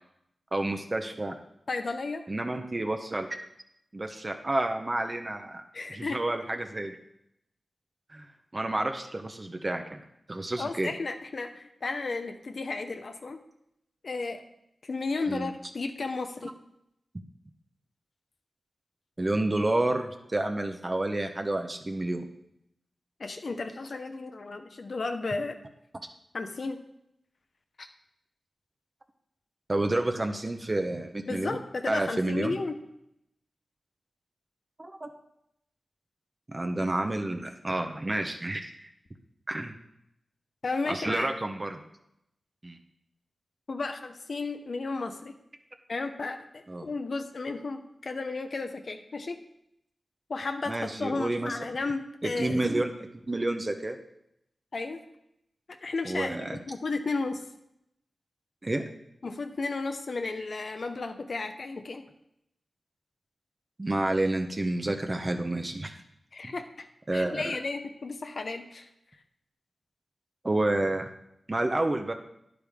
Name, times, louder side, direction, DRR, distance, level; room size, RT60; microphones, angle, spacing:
voice 1, 0.5-1.3 2.3-3.3 3.9-7.0 8.1-8.3 8.5-10.0 10.3-10.9 15.3-15.5 19.2-22.2 29.7-31.6 31.9-32.6 34.8-35.1 36.5-38.9 39.5-39.7 40.9-41.8 42.6-42.8 46.7-46.9 50.7-51.6 52.2-54.0 56.0-56.6 58.6-58.8 63.8-65.9 66.4-66.5 67.1-67.6 70.4-71.1 71.5-72.1, right 2 dB, 35° right, 5 dB, 0.8 m, -29 dB
voice 2, 1.7-2.2 5.7-6.2 10.6-13.4 14.0-14.4 14.8-16.5 23.2-25.5 26.3-26.8 31.3-32.8 40.6-41.3 43.7-45.3 45.9-49.4 50.3-52.6 54.7-55.0 55.8-57.4 59.2-62.0 66.3-66.9 67.1-68.9, left 3 dB, 65° left, 6 dB, 0.8 m, -33 dB
10.0 x 8.6 x 3.6 m, 0.79 s
cardioid pair, 55°, 0 cm